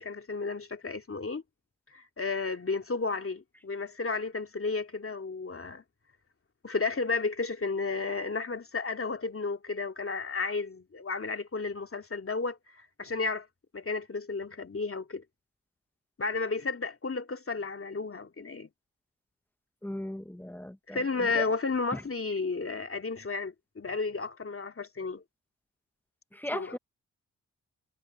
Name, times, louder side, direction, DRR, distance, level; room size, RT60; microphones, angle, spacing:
voice 1, 0.0-1.4 1.9-5.8 6.6-13.5 13.7-15.2 16.2-18.7 20.9-25.2 26.5-26.8, left 4 dB, 40° left, 2.4 m, -33 dB
voice 2, 19.8-21.0 21.3-21.4 21.9-22.0 26.3-26.8, left 1 dB, 5° left, 1.2 m, -37 dB
supercardioid pair, 40°, 35 cm